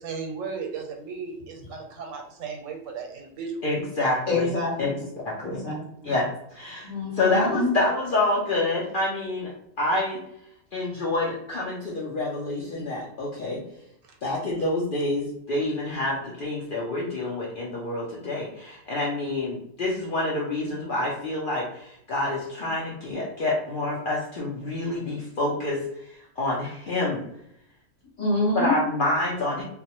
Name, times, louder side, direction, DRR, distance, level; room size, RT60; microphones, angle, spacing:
voice 1, 0.0-3.6, right 5 dB, 90° right, 2 dB, 1.0 m, -35 dB
voice 2, 3.6-4.5 4.8-4.9 5.2-5.6 6.0-6.9 7.2-9.5 9.8-10.2 10.7-13.6 14.2-27.2 28.5-29.6, left 2 dB, 60° left, -4 dB, 0.5 m, -27 dB
voice 3, 4.3-4.9 5.4-6.1 6.8-7.7 28.2-28.7, left 2 dB, 40° left, -4 dB, 0.9 m, -26 dB
2.3 x 2.0 x 2.8 m, 0.76 s
omnidirectional pair, 1.3 m